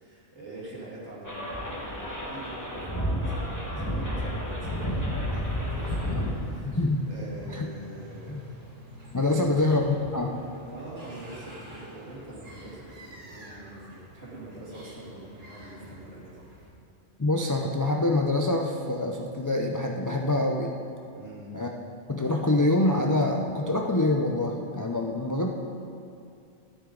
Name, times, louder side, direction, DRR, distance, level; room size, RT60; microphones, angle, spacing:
voice 1, 0.0-8.4 9.4-9.5 10.7-16.7 21.2-21.5, right 2 dB, 60° right, -6 dB, 2.7 m, -44 dB
sound 1, 1.2-6.3, equal, 15° left, 1.5 m, -31 dB
sound 2, 4.5-16.7, equal, 80° right, 2.7 m, -48 dB
voice 2, 6.6-7.0 7.5-7.7 8.3-8.4 9.1-10.4 17.2-20.7 21.5-21.7 22.1-25.5, left 2 dB, 30° left, 1 dB, 0.3 m, -25 dB
12.5 x 10.0 x 3.9 m, 2.5 s
omnidirectional pair, 1.3 m